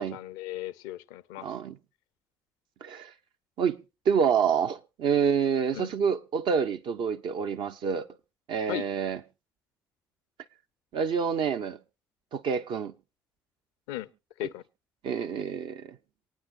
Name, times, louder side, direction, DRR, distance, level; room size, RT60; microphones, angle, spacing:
voice 1, 0.0-1.5 5.7-5.9 8.7-8.8 13.9-14.1 14.4-14.6, left 14 dB, 80° left, 0.5 m, -36 dB
voice 2, 1.4-1.8 2.8-3.1 3.6-3.8 4.1-8.1 8.5-9.2 10.9-11.8 12.3-12.9 14.4-14.5 15.0-16.0, right 6 dB, 60° right, 0.7 m, -27 dB
27.0 x 9.3 x 2.4 m
hypercardioid pair, 45°, 9 cm